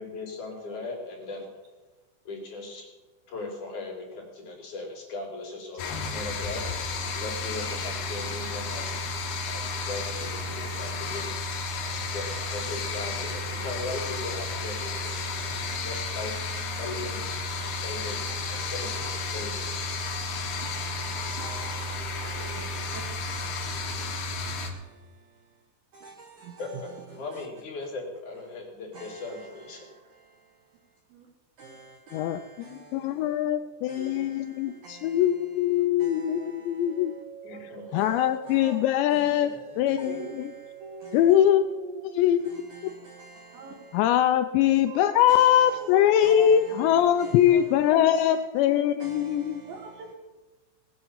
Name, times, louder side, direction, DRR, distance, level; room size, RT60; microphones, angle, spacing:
voice 1, 0.0-1.5 2.3-2.9 3.3-6.6 7.1-9.1 9.4-11.3 12.1-15.4 15.8-16.3 16.6-17.4 17.8-19.1 19.3-19.7 26.6-29.9 37.4-38.0 39.1-40.1, left 3 dB, 45° left, -1 dB, 4.0 m, -38 dB
sound 1, 5.8-24.7, left 3 dB, 65° left, 3.3 m, -32 dB
voice 2, 20.0-24.1 24.4-24.8 25.9-26.6 28.9-29.2 31.6-33.3 33.9-35.2 36.0-36.9 38.0-38.1 40.0-40.3 41.0-41.1 42.7-43.7 45.3-45.7 46.2-46.7 47.2-47.3 49.0-49.7, right 4 dB, 85° right, 4 dB, 1.7 m, -47 dB
voice 3, 32.1-37.1 37.5-37.6 37.9-40.5 41.1-41.6 42.2-42.7 43.9-49.6, left 10 dB, 85° left, 9 dB, 2.6 m, -22 dB
voice 4, 33.4-33.7 34.0-34.2 36.5-36.6 37.5-37.6 37.9-38.0 38.5-38.8 39.3-40.3 40.8-41.3 41.7-42.9 43.5-43.7 44.9-45.1 45.8-45.9 46.2-46.5 46.8-46.9 47.5-47.7 49.6-50.1, right 4 dB, 65° right, 3 dB, 2.5 m, -43 dB
sound 2, 36.8-41.7, right 10 dB, 30° right, 5.2 m, -47 dB
19.5 x 8.2 x 7.2 m, 1.2 s
omnidirectional pair, 5.5 m